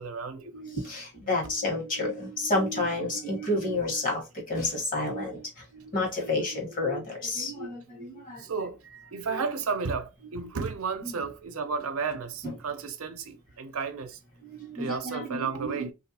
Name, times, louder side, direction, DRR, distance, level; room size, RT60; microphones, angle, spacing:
voice 1, 0.0-0.5 8.4-8.8 9.1-14.2 14.7-15.9, right 5 dB, 80° right, 0.6 m, -33 dB
voice 2, 0.5-8.5 9.2-9.4 12.4-12.5 14.5-15.9, left 2 dB, 40° left, 1.4 m, -30 dB
3.1 x 2.7 x 2.8 m
head